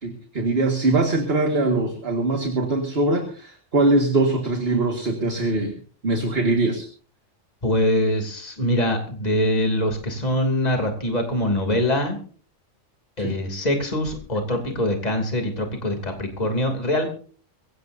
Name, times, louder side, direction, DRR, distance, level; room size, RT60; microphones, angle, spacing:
voice 1, 0.0-5.7 6.0-6.9 13.2-13.4, right 2 dB, 50° right, 3 dB, 2.1 m, -22 dB
voice 2, 7.6-12.2 13.2-17.1, left 1 dB, 35° left, 4 dB, 3.0 m, -23 dB
22.5 x 17.0 x 2.7 m, 0.42 s
omnidirectional pair, 1.3 m